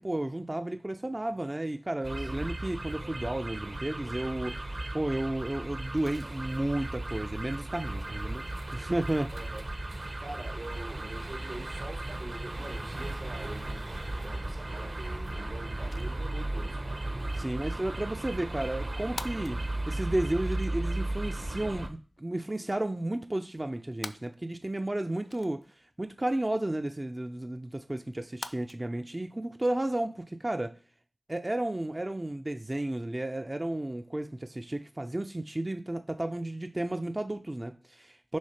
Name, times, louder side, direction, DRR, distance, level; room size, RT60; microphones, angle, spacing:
voice 1, 0.0-8.4 8.7-9.3 17.4-25.6 26.0-30.8 31.3-38.4, right 1 dB, 30° right, 0.4 m, -33 dB
sound 1, 2.0-21.9, right 2 dB, 60° right, 0.9 m, -36 dB
voice 2, 2.2-2.5 9.3-9.7 9.9-17.0, right 2 dB, 85° right, 1.4 m, -45 dB
sound 2, 14.7-28.8, left 3 dB, 90° left, 0.4 m, -50 dB
6.3 x 3.5 x 5.8 m
wide cardioid pair, 45°, 0 cm